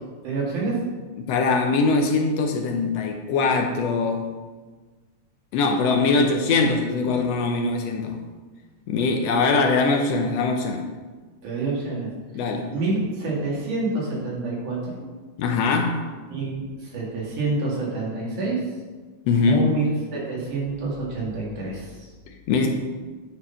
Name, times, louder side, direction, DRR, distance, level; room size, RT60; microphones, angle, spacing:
voice 1, 0.2-0.8 11.4-12.1 12.7-15.1 16.3-18.6 19.5-22.1, right 3 dB, 85° right, -4 dB, 3.6 m, -27 dB
voice 2, 1.2-4.3 5.5-8.2 8.9-10.9 12.3-12.7 15.4-16.1 19.3-19.6 22.3-22.7, left 4 dB, 75° left, 3 dB, 1.5 m, -22 dB
9.3 x 4.3 x 5.5 m, 1.4 s
omnidirectional pair, 3.5 m